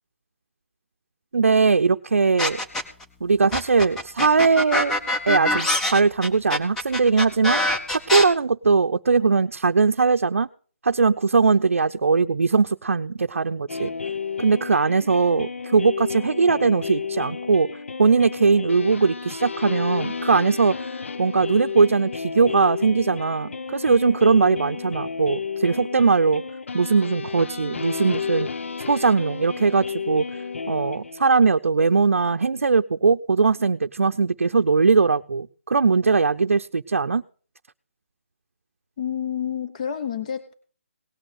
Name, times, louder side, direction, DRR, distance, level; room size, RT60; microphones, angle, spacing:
voice 1, 1.3-2.6 3.2-4.9 5.2-7.6 7.9-10.5 10.8-13.9 14.4-17.7 18.0-26.4 26.7-28.5 28.9-30.3 30.7-37.2, right 4 dB, 85° right, 7 dB, 0.6 m, -20 dB
sound 1, 2.4-3.0 3.5-8.2, left 1 dB, 5° left, 0.8 m, -23 dB
sound 2, 13.7-31.5, left 6 dB, 70° left, 0.7 m, -32 dB
voice 2, 39.0-40.5, left 8 dB, 30° left, 9 dB, 1.0 m, -29 dB
18.0 x 6.2 x 6.6 m, 0.41 s
hypercardioid pair, 165°, 7 cm